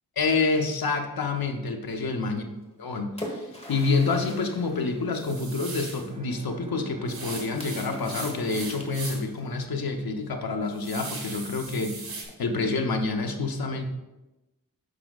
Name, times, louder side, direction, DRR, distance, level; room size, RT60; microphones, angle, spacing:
voice 1, 0.2-2.4 2.8-13.9, left 3 dB, 85° left, 4 dB, 0.9 m, -28 dB
Splash splatter, 2.6-5.8 7.6-9.5, left 1 dB, 20° left, 1.3 m, -42 dB
sound 1, 5.1-6.1 7.1-9.4 9.8-9.9 10.3-12.2, right 3 dB, 90° right, 1.5 m, -39 dB
Bowed string instrument, 5.9-10.4, left 1 dB, 15° right, 0.7 m, -44 dB
9.7 x 6.1 x 2.4 m, 1.0 s
wide cardioid pair, 95°, 35 cm